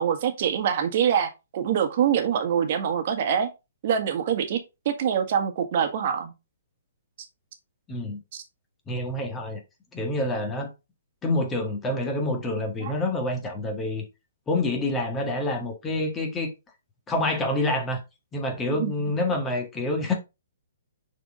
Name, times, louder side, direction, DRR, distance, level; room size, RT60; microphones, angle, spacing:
voice 1, 0.0-3.5 3.8-4.6 4.8-6.3 8.3-8.4 12.8-12.9 18.7-18.9, right 8 dB, 50° right, 1.6 m, -25 dB
voice 2, 7.9-8.2 8.9-9.6 9.9-10.7 11.2-14.0 14.5-16.5 17.1-18.0 18.3-20.1, left 2 dB, 15° left, 1.7 m, -27 dB
6.5 x 4.5 x 3.8 m
hypercardioid pair, 135°, 0 cm